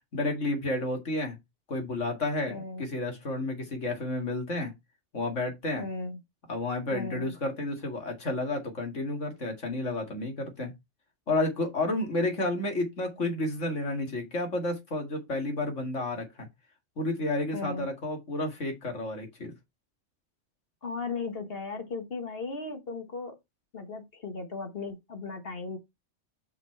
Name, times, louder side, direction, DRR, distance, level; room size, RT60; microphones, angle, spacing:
voice 1, 0.1-1.4 1.7-4.7 5.1-5.8 6.5-10.7 11.3-16.5 17.0-19.5, left 2 dB, 75° left, 2.4 m, -31 dB
voice 2, 2.5-2.9 5.8-6.2 6.9-7.3 17.5-17.9 20.8-23.4 23.7-25.8, left 4 dB, 50° left, 1.6 m, -36 dB
6.1 x 5.5 x 4.5 m
omnidirectional pair, 1.3 m